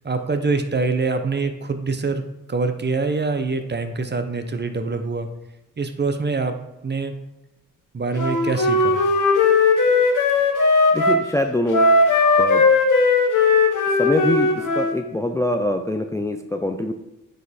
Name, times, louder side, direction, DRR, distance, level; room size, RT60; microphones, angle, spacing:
voice 1, 0.0-2.2 2.5-5.3 5.8-6.6 6.8-7.1 7.9-9.0, right 4 dB, 30° right, 8 dB, 0.7 m, -24 dB
Wind instrument woodwind instrument, 8.1-11.2 11.7-15.0, left 3 dB, 65° left, 1.1 m, -17 dB
voice 2, 10.9-12.0 12.4-12.7 14.0-16.9, left 1 dB, 10° left, 6 dB, 0.4 m, -24 dB
9.0 x 3.1 x 4.2 m, 0.96 s
cardioid pair, 70°, 33 cm